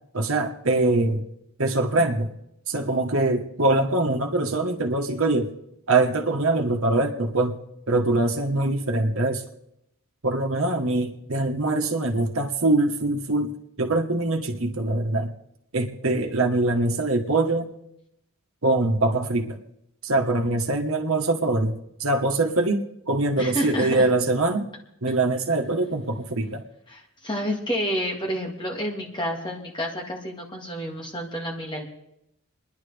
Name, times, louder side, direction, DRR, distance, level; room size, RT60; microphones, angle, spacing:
voice 1, 0.1-1.2 1.6-2.3 2.7-5.5 5.9-7.6 7.9-9.4 10.2-15.3 15.7-17.7 18.6-19.6 20.0-21.7 22.0-24.7 25.0-26.6, right 2 dB, 70° right, 4 dB, 1.4 m, -23 dB
voice 2, 23.4-24.1 26.9-31.8, equal, 20° left, 0 dB, 2.1 m, -29 dB
29.0 x 10.5 x 3.5 m, 0.81 s
head